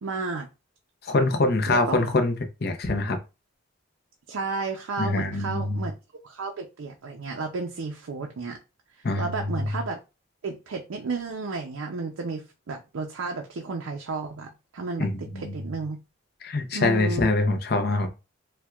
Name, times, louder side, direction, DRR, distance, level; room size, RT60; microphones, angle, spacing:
voice 1, 0.0-0.5 1.7-2.1 4.3-5.9 6.2-8.6 9.2-10.0 10.4-15.1 15.3-16.0 16.7-17.3, right 4 dB, 90° right, 0.5 m, -32 dB
voice 2, 1.0-2.3 2.6-3.2 5.0-5.8 9.0-9.6 15.0-15.6 16.4-18.1, left 2 dB, 50° left, 0.6 m, -24 dB
4.4 x 2.2 x 2.3 m
head